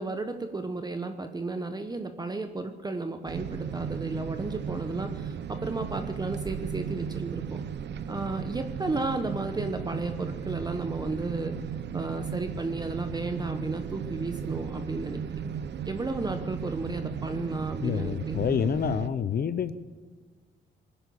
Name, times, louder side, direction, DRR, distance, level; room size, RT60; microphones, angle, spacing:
voice 1, 0.0-7.6 8.1-11.6 11.9-15.5 15.9-18.5, right 3 dB, 20° right, 7 dB, 1.0 m, -33 dB
sound 1, 3.3-19.1, right 7 dB, 60° right, 0.8 m, -36 dB
voice 2, 17.8-19.7, left 8 dB, 50° left, 13 dB, 0.7 m, -27 dB
20.0 x 10.0 x 7.1 m, 1.5 s
cardioid pair, 90°, 20 cm